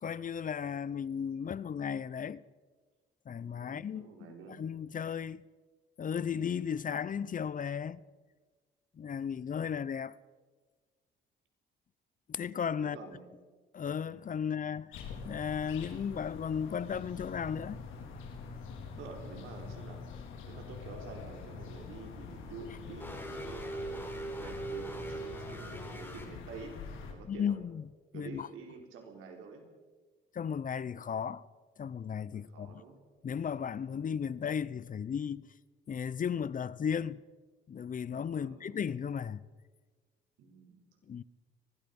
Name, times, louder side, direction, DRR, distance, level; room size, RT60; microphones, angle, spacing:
voice 1, 0.0-2.4 3.3-4.1 4.5-5.4 6.0-8.0 9.0-10.2 12.3-13.0 13.7-15.0 15.2-17.8 27.3-28.5 30.3-31.4 31.8-32.8 33.2-35.5 35.9-37.2 37.7-39.4 41.1-41.2, left 7 dB, 40° left, 0.7 m, -35 dB
voice 2, 3.6-4.6 12.8-13.3 18.9-20.0 20.5-27.5 28.1-29.7 32.3-33.0 38.4-38.8 40.4-40.8, right 4 dB, 90° right, 4.4 m, -48 dB
sound 1, 14.9-27.1, left 5 dB, 90° left, 4.0 m, -45 dB
sound 2, 23.0-26.2, right 2 dB, 10° left, 4.4 m, -40 dB
23.5 x 20.5 x 5.4 m
cardioid pair, 90°, 20 cm